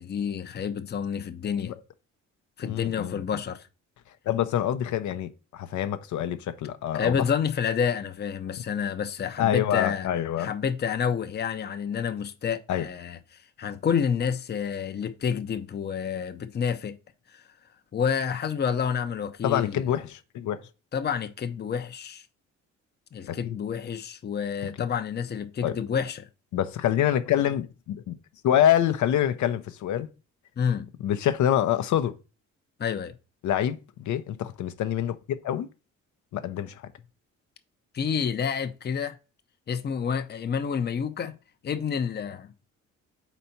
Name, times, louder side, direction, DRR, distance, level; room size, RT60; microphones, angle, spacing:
voice 1, 0.0-1.7 2.6-3.6 6.9-10.1 10.4-13.2 13.6-17.0 17.3-17.4 17.9-19.8 20.9-22.2 23.1-26.3 30.6-30.9 32.8-33.1 37.9-39.2 39.7-41.4 41.6-42.5, left 7 dB, 35° left, 0.6 m, -29 dB
voice 2, 2.6-3.2 4.3-7.3 9.4-10.5 12.7-12.9 19.4-20.6 23.3-23.6 25.6-25.8 26.5-28.2 28.4-30.1 31.0-32.1 33.4-35.7 36.3-36.8, left 11 dB, 70° left, 0.7 m, -26 dB
4.3 x 4.1 x 5.7 m
cardioid pair, 90°, 30 cm